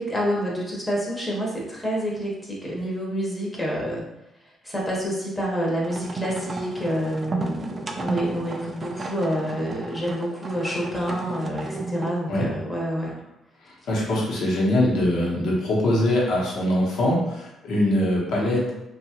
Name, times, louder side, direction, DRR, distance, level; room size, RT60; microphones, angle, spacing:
voice 1, 0.0-4.1 4.6-13.2, equal, 20° left, -3 dB, 0.8 m, -28 dB
sound 1, 5.8-12.3, right 3 dB, 35° right, 0.4 m, -33 dB
voice 2, 13.6-18.7, left 1 dB, 75° left, -4 dB, 0.9 m, -23 dB
2.7 x 2.3 x 2.8 m, 0.90 s
cardioid pair, 90°, 0 cm